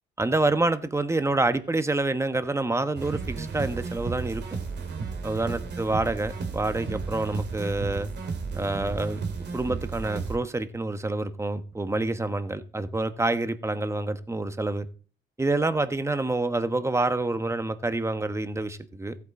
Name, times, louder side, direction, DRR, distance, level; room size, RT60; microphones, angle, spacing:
voice 1, 0.2-4.4 5.2-8.1 8.5-9.2 9.5-14.9 15.4-19.2, right 2 dB, 15° right, 1.1 m, -27 dB
sound 1, 3.0-10.4, right 4 dB, 60° right, 2.2 m, -33 dB
14.5 x 8.5 x 4.2 m
cardioid pair, 90°, 20 cm